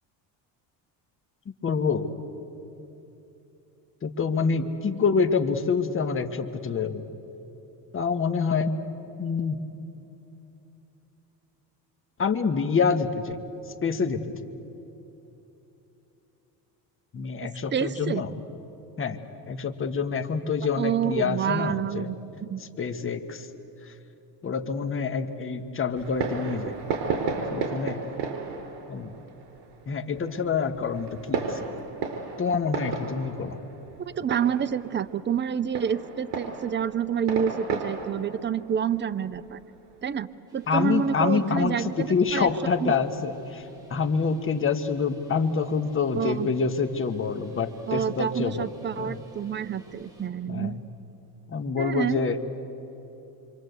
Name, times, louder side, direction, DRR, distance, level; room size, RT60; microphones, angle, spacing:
voice 1, 1.4-2.1 4.0-7.0 7.9-8.8 9.2-9.6 12.2-13.4 13.8-14.5 17.1-18.4 19.0-19.2 19.5-22.1 22.6-23.5 23.8-23.9 24.4-26.8 27.5-28.0 28.9-29.1 29.9-31.7 32.4-33.6 40.7-48.7 49.0-49.2 50.5-50.8 51.5-52.4, left 5 dB, 30° left, 7 dB, 1.5 m, -27 dB
voice 2, 17.7-18.2 20.8-22.6 34.1-39.6 40.0-42.5 42.8-42.9 46.2-46.5 47.9-50.7 51.8-52.2, right 8 dB, 25° right, 12 dB, 0.7 m, -28 dB
Fireworks, 26.0-40.1, right 5 dB, 65° right, 4.1 m, -34 dB
sound 1, 40.5-50.3, equal, 10° right, 6.0 m, -55 dB
27.0 x 24.5 x 8.1 m, 3.0 s
cardioid pair, 110°, 43 cm